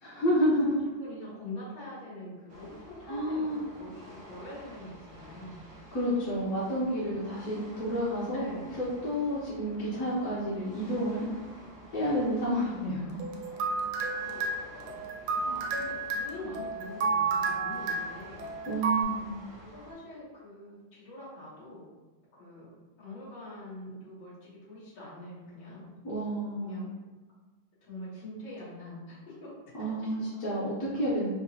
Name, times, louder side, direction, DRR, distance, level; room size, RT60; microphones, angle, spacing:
voice 1, 0.0-0.8 3.1-3.7 5.9-8.4 8.8-11.3 11.9-13.2 18.7-19.3 26.0-26.8 29.8-31.3, equal, 55° left, -9 dB, 0.9 m, -30 dB
voice 2, 0.6-5.6 7.0-7.1 8.3-8.7 14.0-15.0 15.3-18.7 19.5-21.8 22.3-22.7 23.0-25.9 26.6-26.9 27.8-29.5 30.0-30.2, left 1 dB, 85° left, -11 dB, 2.5 m, -44 dB
sound 1, 2.5-19.9, equal, 40° right, 0.5 m, -50 dB
sound 2, 13.2-19.0, right 4 dB, 80° right, 1.3 m, -31 dB
4.8 x 2.1 x 2.8 m, 1.2 s
omnidirectional pair, 2.1 m